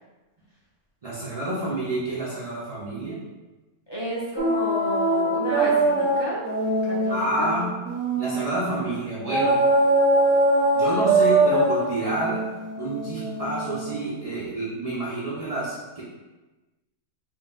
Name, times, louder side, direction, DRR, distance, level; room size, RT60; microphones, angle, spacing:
voice 1, 1.0-3.2 7.1-7.7 8.2-9.6 10.7-12.4 12.8-16.0, right 1 dB, 40° right, -7 dB, 0.5 m, -28 dB
voice 2, 3.9-6.5 6.8-7.5, right 1 dB, 25° left, -7 dB, 0.6 m, -31 dB
sound 1, 4.4-8.5 9.3-14.0, right 2 dB, 65° right, 1.1 m, -22 dB
3.9 x 2.3 x 3.7 m, 1.2 s
omnidirectional pair, 1.5 m